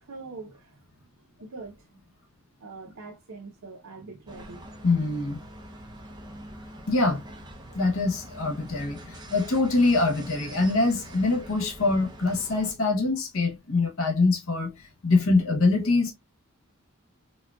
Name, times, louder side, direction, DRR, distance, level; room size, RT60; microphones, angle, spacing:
voice 1, 0.0-1.1 1.4-1.9 2.6-4.6, right 3 dB, 80° right, 0.8 m, -43 dB
sound 1, 4.3-12.7, right 1 dB, 20° right, 0.5 m, -44 dB
voice 2, 4.8-5.4 6.9-7.2 7.7-14.7 15.0-16.1, left 3 dB, 70° left, 0.7 m, -24 dB
4.0 x 2.2 x 2.2 m
head